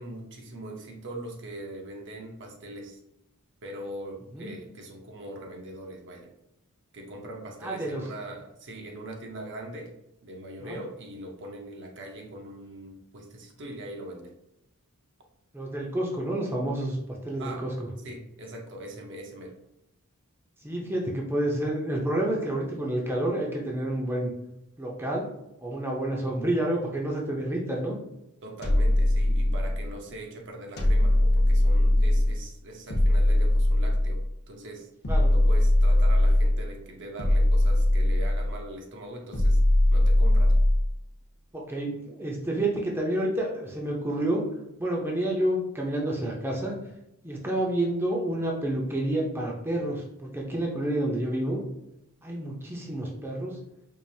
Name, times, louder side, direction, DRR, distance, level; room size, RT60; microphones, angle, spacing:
voice 1, 0.0-3.0 3.6-6.3 6.9-9.9 10.2-14.3 17.4-17.7 18.0-19.6 28.4-34.9 35.3-39.6 39.9-40.6, right 1 dB, 55° right, 2 dB, 0.7 m, -41 dB
voice 2, 7.6-8.0 10.6-10.8 15.5-17.7 20.6-24.3 24.8-25.3 25.6-28.0 35.1-35.3 41.5-44.4 44.8-46.7 47.2-51.6 52.2-53.6, right 1 dB, 10° right, -2 dB, 0.5 m, -29 dB
sound 1, 28.6-29.9 30.8-32.4 32.9-34.3 35.0-36.7 37.2-38.6 39.3-40.9, left 1 dB, 50° left, 0.8 m, -21 dB
4.6 x 2.4 x 2.7 m, 0.84 s
head